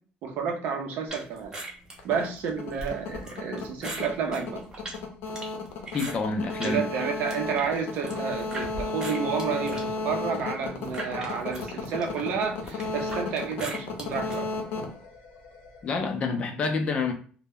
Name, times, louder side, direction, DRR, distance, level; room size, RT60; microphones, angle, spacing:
voice 1, 0.2-1.5 2.0-4.6 6.6-14.5, right 6 dB, 70° right, 3 dB, 0.5 m, -30 dB
sound 1, 1.1-6.8 7.1-8.7 9.0-14.4, right 2 dB, 20° right, 0.7 m, -40 dB
sound 2, 2.0-15.8, left 3 dB, 80° left, 0.6 m, -34 dB
voice 2, 5.9-6.8 15.8-17.1, left 4 dB, 35° left, 4 dB, 0.4 m, -27 dB
2.1 x 2.1 x 3.5 m, 0.42 s
cardioid pair, 150°, 3 cm